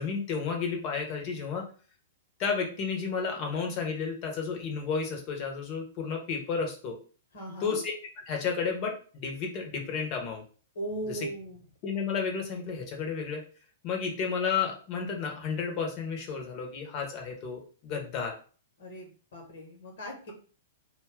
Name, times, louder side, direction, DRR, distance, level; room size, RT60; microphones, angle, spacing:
voice 1, 0.0-1.7 2.4-7.0 7.6-7.9 8.3-10.4 11.1-11.2 11.8-13.4 13.8-18.3, left 5 dB, 40° left, 2 dB, 0.9 m, -32 dB
voice 2, 7.3-7.8 10.7-11.6 18.8-20.3, right 1 dB, 60° left, 1 dB, 1.2 m, -38 dB
2.6 x 2.3 x 3.4 m, 0.40 s
figure-of-eight pair, 105°, 0 cm